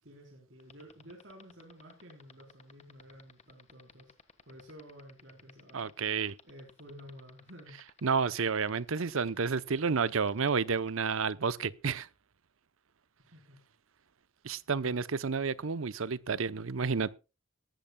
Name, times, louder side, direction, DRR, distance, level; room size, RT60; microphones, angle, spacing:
voice 1, 0.0-6.2 6.4-7.8 13.2-13.6 14.7-15.1, equal, 55° right, 3.9 m, -52 dB
sound 1, 0.6-10.9, left 5 dB, 30° left, 1.4 m, -55 dB
voice 2, 5.7-6.3 8.0-12.1 14.4-17.1, right 5 dB, 75° right, 0.7 m, -30 dB
19.0 x 14.5 x 2.3 m
head